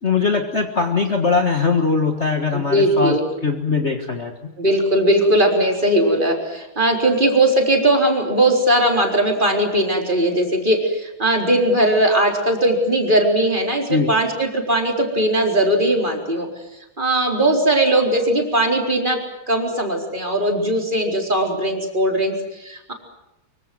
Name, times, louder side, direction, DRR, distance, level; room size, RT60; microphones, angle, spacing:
voice 1, 0.0-3.1 3.4-4.3 13.9-14.1 17.9-18.0, left 4 dB, 35° left, 4 dB, 1.8 m, -20 dB
voice 2, 2.5-3.2 4.6-16.5 17.0-22.9, right 1 dB, 20° right, 2 dB, 4.3 m, -19 dB
25.0 x 24.0 x 7.7 m, 0.91 s
omnidirectional pair, 2.3 m